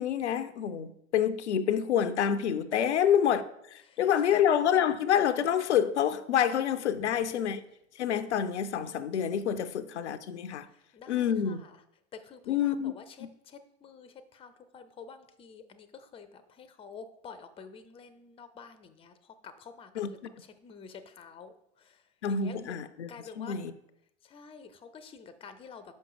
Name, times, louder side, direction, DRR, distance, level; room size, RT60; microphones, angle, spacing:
voice 1, 0.0-7.6 8.0-10.7 11.1-11.6 12.5-12.9 20.0-20.1 22.2-23.1 23.4-23.7, left 9 dB, 80° left, 0.5 m, -27 dB
voice 2, 3.8-4.5 7.0-7.1 10.7-11.8 12.1-22.8 23.1-23.6 24.2-26.0, left 5 dB, 15° left, 0.5 m, -49 dB
5.6 x 5.2 x 4.8 m
figure-of-eight pair, 75°, 34 cm